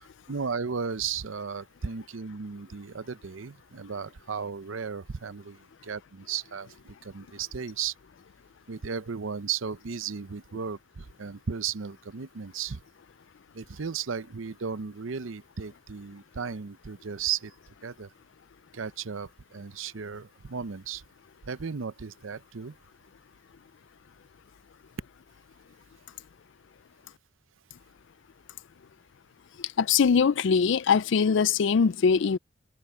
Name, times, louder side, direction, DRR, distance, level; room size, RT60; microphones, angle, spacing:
voice 1, 0.3-7.9 8.7-12.8 13.5-17.5 17.8-18.1 18.7-21.0 21.5-22.7, right 6 dB, 70° right, 0.7 m, -35 dB
voice 2, 29.8-32.4, left 6 dB, 60° left, 0.4 m, -22 dB
head